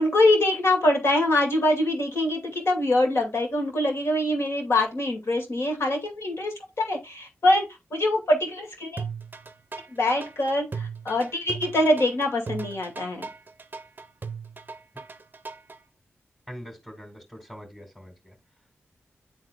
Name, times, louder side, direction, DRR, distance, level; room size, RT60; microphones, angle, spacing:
voice 1, 0.0-7.6 7.9-9.0 9.9-13.3, left 1 dB, 60° left, 2.3 m, -24 dB
sound 1, 9.0-15.8, right 5 dB, 40° right, 0.6 m, -37 dB
voice 2, 16.5-18.3, equal, 5° left, 2.3 m, -43 dB
10.5 x 3.7 x 2.4 m
cardioid pair, 40°, 5 cm